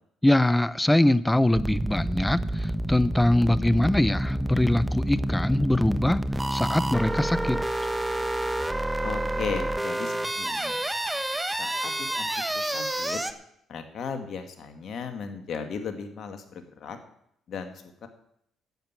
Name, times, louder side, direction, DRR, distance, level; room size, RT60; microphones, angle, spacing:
voice 1, 0.2-6.2 6.5-7.6, left 1 dB, 10° left, 17 dB, 0.7 m, -23 dB
sound 1, 1.5-13.3, right 1 dB, 10° right, 1.2 m, -28 dB
voice 2, 9.0-10.8 11.6-13.2 13.7-17.0 17.5-17.7 18.0-18.1, left 6 dB, 60° left, 7 dB, 2.1 m, -36 dB
10.5 x 7.9 x 8.9 m, 0.73 s
supercardioid pair, 60°, 0 cm